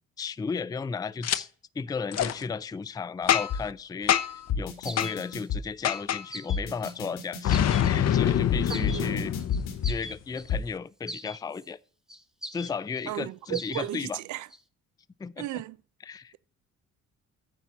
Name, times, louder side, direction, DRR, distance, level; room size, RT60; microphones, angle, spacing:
voice 1, 0.2-4.1 4.6-9.3 9.9-11.8 12.5-14.2 15.2-15.5 16.0-16.3, left 5 dB, 15° left, 0.4 m, -34 dB
Boom, 1.2-1.4 2.1-2.3 3.3-3.7 4.1-4.4 5.0-5.1 5.8-6.2 7.4-10.1, left 10 dB, 60° left, 0.8 m, -25 dB
sound 1, 3.5-3.6 4.5-5.6 6.5-7.6 8.5-10.0 10.5-10.6, left 6 dB, 85° left, 2.2 m, -30 dB
sound 2, 4.8-5.2 5.9-6.0 6.3-7.0 7.5-8.0 8.7-9.0 9.4-10.5 11.1-11.7 12.1-13.1 13.5-13.9 14.2-14.6, equal, ahead, 0.9 m, -41 dB
voice 2, 8.7-9.3 13.1-14.5 15.4-15.8, right 15 dB, 75° right, 0.5 m, -35 dB
9.4 x 4.0 x 7.2 m
cardioid pair, 90°, 30 cm